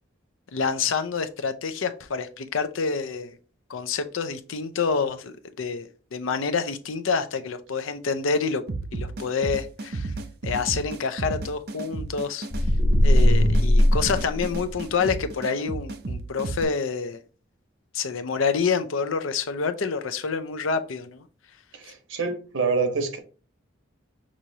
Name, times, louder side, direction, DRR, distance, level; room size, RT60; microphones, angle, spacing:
voice 1, 0.5-3.4 3.7-8.6 8.9-10.1 10.4-12.5 13.0-17.2 17.9-21.2, left 5 dB, 90° left, 0.6 m, -27 dB
sound 1, 8.7-16.6, right 3 dB, 50° right, 0.6 m, -33 dB
sound 2, 12.5-14.9, left 1 dB, 25° left, 0.4 m, -19 dB
voice 2, 21.7-23.2, right 4 dB, 85° right, 1.0 m, -26 dB
6.1 x 2.9 x 2.7 m
head